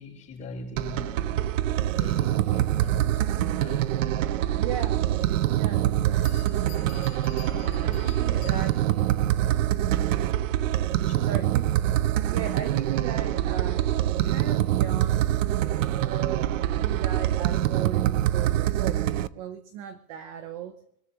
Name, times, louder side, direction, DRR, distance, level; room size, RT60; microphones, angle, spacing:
voice 1, 0.0-1.4 2.0-3.9 5.8-6.1 6.5-8.6 9.5-9.6 11.0-11.4, left 2 dB, 15° left, -3 dB, 6.5 m, -42 dB
sound 1, 0.8-19.3, right 12 dB, 60° right, 0.7 m, -25 dB
voice 2, 4.6-5.1 5.5-6.3 7.8-8.8 9.8-9.9 11.3-11.7 12.2-15.4 16.0-19.0 19.3-20.7, right 9 dB, 25° right, 10 dB, 0.5 m, -37 dB
Bell, 6.2-9.0, left 14 dB, 45° left, 3.5 m, -49 dB
26.0 x 13.5 x 3.0 m, 0.78 s
supercardioid pair, 175°, 43 cm